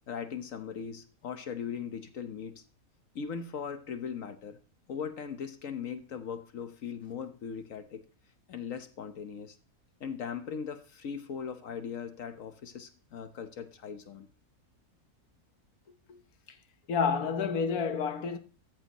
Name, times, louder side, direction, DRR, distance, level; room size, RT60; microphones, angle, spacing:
voice 1, 0.1-2.6 3.1-4.6 4.9-8.0 8.5-9.5 10.0-14.3, left 7 dB, 65° left, 1.3 m, -39 dB
voice 2, 16.9-18.4, left 6 dB, 80° left, 1.4 m, -29 dB
13.5 x 6.9 x 3.0 m
omnidirectional pair, 1.5 m